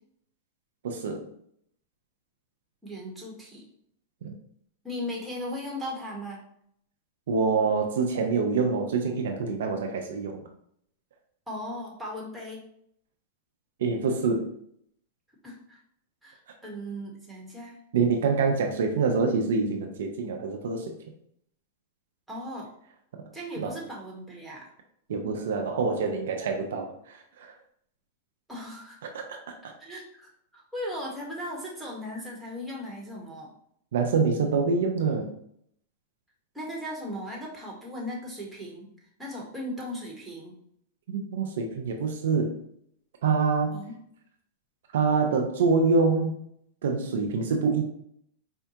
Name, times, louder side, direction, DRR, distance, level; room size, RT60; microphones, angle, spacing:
voice 1, 0.8-1.3 4.2-4.3 7.3-10.4 13.8-14.5 17.9-20.9 23.6-23.8 25.1-27.5 29.3-29.5 33.9-35.3 41.1-42.6 43.2-43.8 44.9-46.4 46.8-47.8, right 4 dB, 75° right, 3 dB, 0.5 m, -26 dB
voice 2, 2.8-3.7 4.8-6.4 11.5-12.6 15.4-15.8 16.2-17.8 22.3-22.7 23.3-24.7 28.5-29.0 29.8-33.5 36.5-38.9 39.2-40.5 43.7-43.9, equal, 5° right, -3 dB, 1.2 m, -37 dB
4.4 x 2.2 x 2.8 m, 0.69 s
hypercardioid pair, 120°, 0 cm